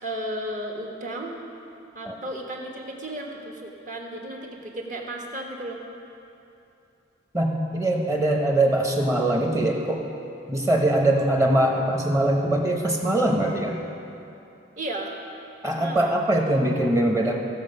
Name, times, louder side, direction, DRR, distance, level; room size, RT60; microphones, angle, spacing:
voice 1, 0.0-1.4 1.9-5.8 14.8-15.1 15.6-16.2, right 1 dB, 40° right, 0 dB, 1.2 m, -34 dB
voice 2, 7.3-10.0 10.5-13.8 15.6-17.4, right 1 dB, 15° right, 1 dB, 0.9 m, -22 dB
16.0 x 6.9 x 5.4 m, 2.8 s
head